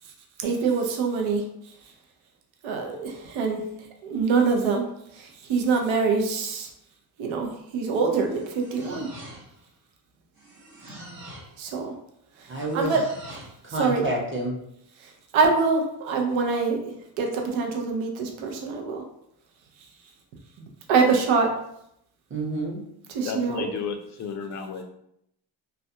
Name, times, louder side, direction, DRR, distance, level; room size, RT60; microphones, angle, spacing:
voice 1, 0.4-1.4 2.6-3.6 4.0-4.9 5.1-6.7 7.2-9.1 11.6-11.9 12.4-13.1 13.7-14.0 15.0-19.0 20.6-21.5 23.1-23.7, right 4 dB, 80° right, 2 dB, 0.6 m, -25 dB
sound 1, 8.1-9.7 10.3-11.6 12.5-13.6, right 1 dB, 50° right, 1.0 m, -44 dB
voice 2, 12.5-13.0 13.6-14.6 22.3-22.8, right 1 dB, 25° right, -1 dB, 0.7 m, -29 dB
voice 3, 23.2-24.8, left 6 dB, 40° left, 5 dB, 0.4 m, -32 dB
2.3 x 2.2 x 2.7 m, 0.76 s
cardioid pair, 90°, 47 cm